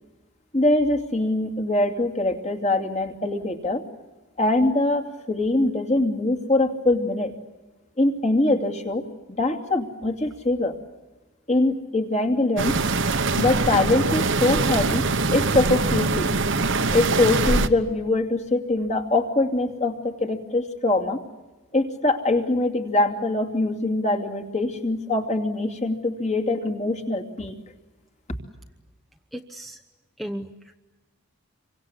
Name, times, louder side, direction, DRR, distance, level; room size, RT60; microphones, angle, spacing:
voice 1, 0.5-3.8 4.4-7.3 8.0-9.0 9.4-10.8 11.5-12.8 13.3-15.0 15.3-16.4 16.9-21.2 21.7-27.6, left 2 dB, 30° left, 2 dB, 2.7 m, -23 dB
sound 1, 12.6-17.7, right 3 dB, 55° right, 1.2 m, -23 dB
voice 2, 29.3-29.8 30.2-30.7, equal, ahead, 5 dB, 0.9 m, -35 dB
28.0 x 24.5 x 8.2 m, 1.2 s
head